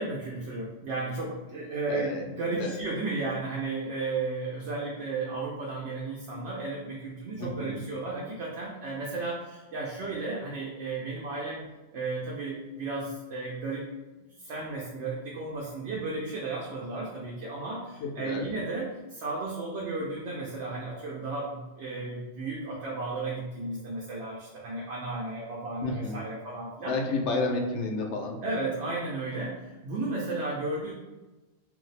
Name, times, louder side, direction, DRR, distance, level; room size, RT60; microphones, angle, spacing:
voice 1, 0.0-11.6 11.9-13.9 14.2-26.9 28.4-30.9, right 3 dB, 75° right, -4 dB, 0.9 m, -34 dB
voice 2, 1.9-2.2 2.6-2.8 7.4-7.8 18.0-18.5 25.8-26.2 26.9-28.4, left 3 dB, 90° left, 2 dB, 0.9 m, -31 dB
2.6 x 2.0 x 3.9 m, 1.1 s
omnidirectional pair, 1.2 m